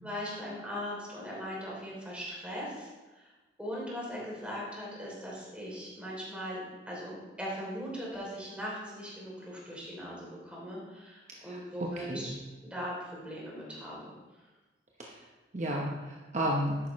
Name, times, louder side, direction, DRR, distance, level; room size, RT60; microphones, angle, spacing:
voice 1, 0.0-3.3 3.6-12.3 12.6-14.1, equal, 5° right, -5 dB, 3.0 m, -40 dB
voice 2, 11.3-12.4 15.0-15.2 15.5-16.8, equal, 45° right, -2 dB, 0.9 m, -33 dB
11.5 x 8.6 x 3.1 m, 1.2 s
head